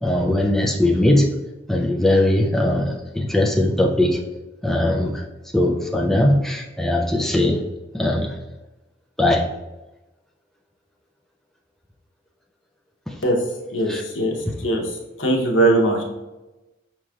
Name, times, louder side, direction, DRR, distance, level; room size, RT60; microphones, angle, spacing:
voice 1, 0.0-1.4 1.7-4.2 4.6-5.3 5.5-7.6 7.9-8.4 9.2-9.5 13.1-13.2 13.9-14.0, left 1 dB, ahead, 0 dB, 0.3 m, -20 dB
voice 2, 13.7-14.9 15.2-16.0, right 2 dB, 85° left, 0 dB, 0.9 m, -20 dB
5.7 x 3.1 x 2.3 m, 1.0 s
head